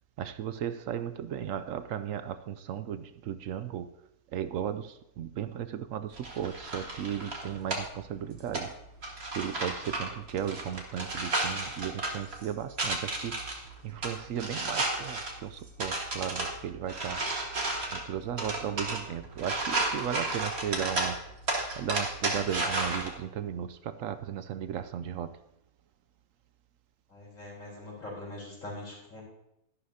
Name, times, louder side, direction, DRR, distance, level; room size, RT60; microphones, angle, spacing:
voice 1, 0.2-3.9 4.3-8.8 9.3-17.3 17.9-21.2 21.8-25.4, right 9 dB, 70° right, 11 dB, 0.8 m, -35 dB
sound 1, 6.1-23.1, right 2 dB, 45° right, 1.9 m, -34 dB
voice 2, 27.1-29.2, left 2 dB, 55° left, -3 dB, 4.5 m, -42 dB
13.0 x 11.5 x 2.7 m, 0.83 s
omnidirectional pair, 1.6 m